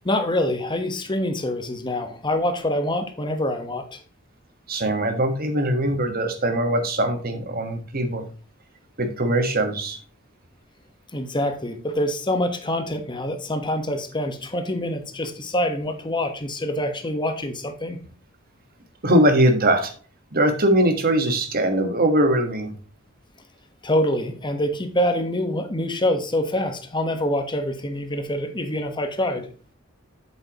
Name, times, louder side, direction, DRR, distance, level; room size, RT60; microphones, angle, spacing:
voice 1, 0.0-4.0 11.1-18.0 23.8-29.5, left 1 dB, 25° left, 6 dB, 1.2 m, -25 dB
voice 2, 4.7-8.3 9.0-10.0 19.0-19.9 20.3-22.7, right 1 dB, 50° right, 6 dB, 1.4 m, -21 dB
7.9 x 7.9 x 3.0 m, 0.39 s
head